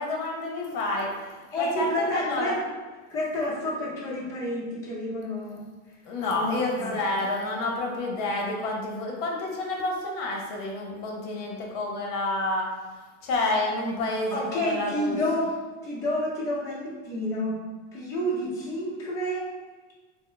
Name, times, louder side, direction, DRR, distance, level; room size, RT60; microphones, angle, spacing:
voice 1, 0.0-2.5 6.1-12.7 13.2-15.2, left 2 dB, 50° left, 0 dB, 0.7 m, -29 dB
voice 2, 1.5-2.5 3.1-5.6 6.2-7.0 14.3-15.5 15.8-17.6 17.9-19.4, left 1 dB, 10° left, -8 dB, 0.5 m, -29 dB
3.6 x 2.0 x 3.8 m, 1.3 s
supercardioid pair, 160°, 35 cm